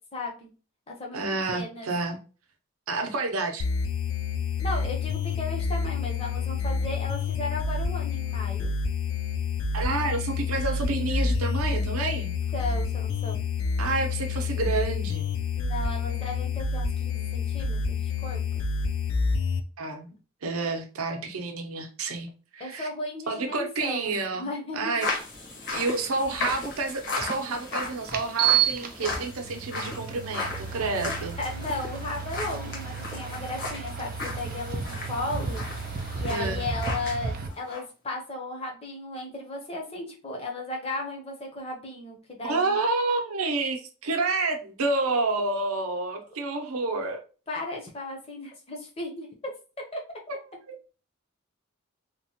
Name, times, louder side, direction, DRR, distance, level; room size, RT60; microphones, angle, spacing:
voice 1, 0.1-0.5 0.9-1.9 4.6-8.7 12.5-13.4 15.6-18.7 22.6-24.9 31.4-35.6 36.1-42.8 47.5-49.5 49.9-50.0, left 2 dB, 30° left, 0.6 m, -35 dB
voice 2, 1.1-2.2 2.9-3.7 9.7-12.3 13.8-15.3 19.8-22.3 22.5-22.9 23.3-24.5 24.7-25.1 25.7-31.3 36.3-36.6 42.4-47.2, right 3 dB, 90° right, 0.6 m, -29 dB
sound 1, 3.6-19.6, left 5 dB, 70° left, 0.3 m, -28 dB
sound 2, 25.0-37.2 37.5-37.8, left 3 dB, 55° left, 1.0 m, -36 dB
sound 3, 27.2-27.3 28.1-37.5, right 7 dB, 40° right, 0.3 m, -31 dB
2.9 x 2.1 x 2.8 m
head